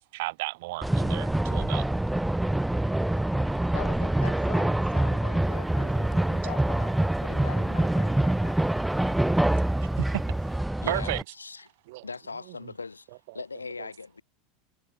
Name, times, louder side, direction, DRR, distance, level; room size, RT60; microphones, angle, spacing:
voice 1, 0.1-1.9 5.0-5.1 5.9-6.3 9.8-10.2 10.9-11.2 11.9-12.1 13.3-13.4 13.8-13.9, right 21 dB, 55° right, 0.7 m, -34 dB
sound 1, 0.8-11.2, right 1 dB, 5° right, 0.4 m, -25 dB
voice 2, 3.7-8.6, left 16 dB, 60° left, 0.9 m, -43 dB
sound 2, 5.4-10.6, right 5 dB, 20° right, 2.0 m, -47 dB
voice 3, 10.8-11.7 12.0-13.1 13.3-14.2, left 4 dB, 80° left, 1.4 m, -39 dB
figure-of-eight pair, 80°, 0 cm